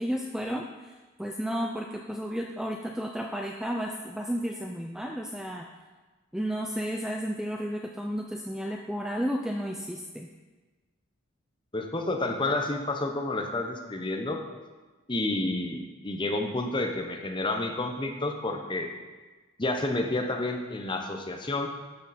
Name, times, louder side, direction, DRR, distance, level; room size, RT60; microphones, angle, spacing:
voice 1, 0.0-5.7 6.3-10.3, equal, 5° right, 2 dB, 0.4 m, -32 dB
voice 2, 11.7-14.4 15.1-18.9 19.6-21.7, left 2 dB, 20° left, 3 dB, 0.8 m, -30 dB
11.5 x 6.5 x 4.2 m, 1.3 s
head